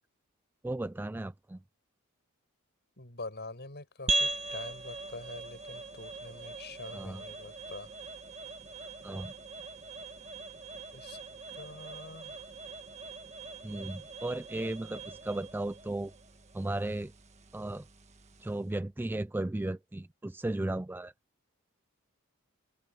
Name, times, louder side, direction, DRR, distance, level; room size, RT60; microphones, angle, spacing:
voice 1, 0.6-1.6 6.9-7.2 9.0-9.3 13.6-16.1 16.5-17.1 17.5-17.9 18.4-21.1, right 1 dB, 10° right, 0.3 m, -35 dB
voice 2, 3.0-7.9 10.9-11.2 11.5-12.5, left 2 dB, 50° left, 6.8 m, -45 dB
sound 1, 4.1-18.7, right 3 dB, 30° right, 1.6 m, -40 dB
head